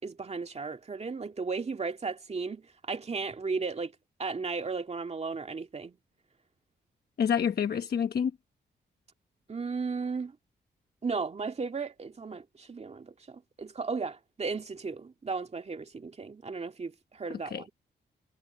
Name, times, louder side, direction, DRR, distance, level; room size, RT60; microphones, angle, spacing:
voice 1, 0.0-3.9 4.2-6.0 9.5-10.4 11.0-17.7, right 4 dB, 35° right, 2.1 m, -35 dB
voice 2, 7.2-8.3 17.5-17.7, left 7 dB, 60° left, 1.1 m, -27 dB
cardioid pair, 85°, 18 cm